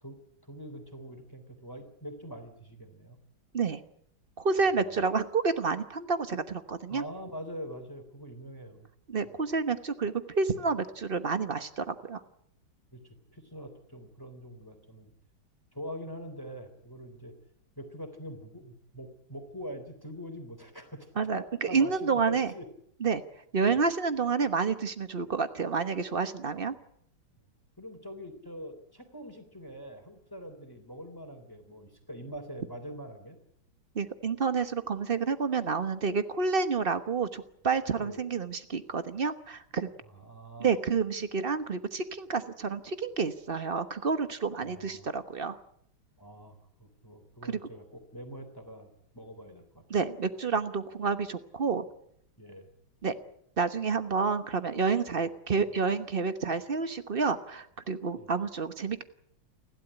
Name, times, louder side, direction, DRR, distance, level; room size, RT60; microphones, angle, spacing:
voice 1, 0.5-3.2 4.7-5.0 6.9-8.9 12.9-15.1 15.7-17.3 17.8-22.6 23.7-23.8 27.8-33.4 38.0-38.2 40.1-40.7 44.6-45.1 46.2-49.8 52.4-52.7 55.1-55.3 58.1-58.3, equal, 10° left, 7 dB, 3.3 m, -44 dB
voice 2, 4.4-7.0 9.1-12.2 21.2-22.5 23.0-23.2 23.5-26.7 33.9-39.9 40.6-45.6 47.4-47.6 49.9-51.8 53.0-53.1 53.6-59.0, right 5 dB, 35° right, 11 dB, 1.0 m, -29 dB
29.5 x 12.5 x 9.7 m, 0.71 s
omnidirectional pair, 2.2 m